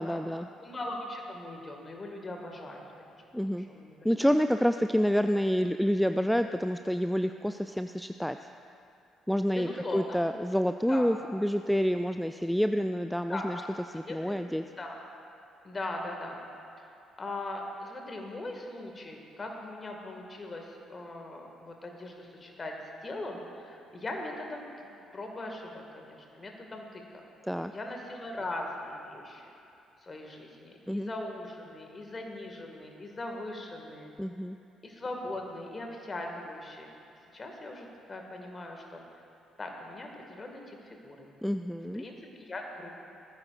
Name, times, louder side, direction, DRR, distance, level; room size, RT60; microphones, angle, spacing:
voice 1, 0.0-0.5 3.3-3.7 4.0-8.4 9.3-13.6 13.9-14.6 27.5-27.7 30.9-31.1 34.2-34.6 41.4-42.0, equal, ahead, 8 dB, 0.4 m, -28 dB
voice 2, 0.6-3.2 3.5-4.3 9.5-10.2 10.9-11.2 13.3-13.7 14.1-14.5 14.8-15.0 15.6-16.4 16.8-22.8 23.0-27.0 27.7-29.5 30.0-34.1 34.8-36.9 37.3-39.0 39.6-41.3 41.9-42.9, left 2 dB, 30° left, 2 dB, 1.9 m, -40 dB
18.0 x 14.5 x 2.5 m, 2.7 s
figure-of-eight pair, 45°, 0 cm